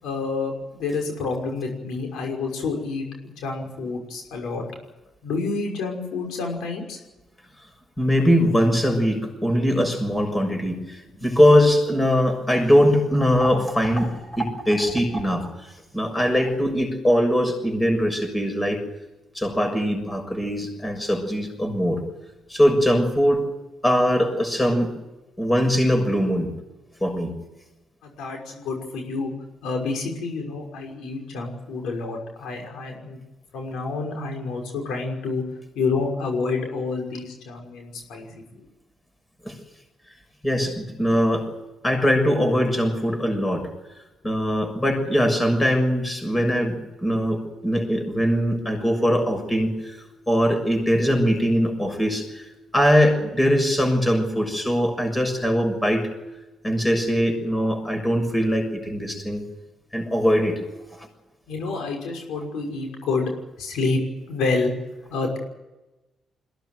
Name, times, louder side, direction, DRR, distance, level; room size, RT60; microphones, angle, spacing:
voice 1, 0.0-4.6 5.2-7.0 28.0-29.3 29.6-33.2 33.5-35.4 35.7-38.6 61.5-63.3 63.6-64.0 64.3-64.7 65.1-65.4, left 3 dB, 80° left, 2 dB, 5.9 m, -28 dB
voice 2, 8.0-18.8 19.3-22.0 22.5-23.4 23.8-24.9 25.4-26.5 27.0-27.3 39.4-39.6 40.4-41.5 41.8-43.7 44.2-50.0 50.3-56.1 56.6-59.4 59.9-60.6, equal, 10° left, 4 dB, 6.7 m, -21 dB
22.0 x 17.5 x 9.4 m, 1.0 s
cardioid pair, 90°, 0 cm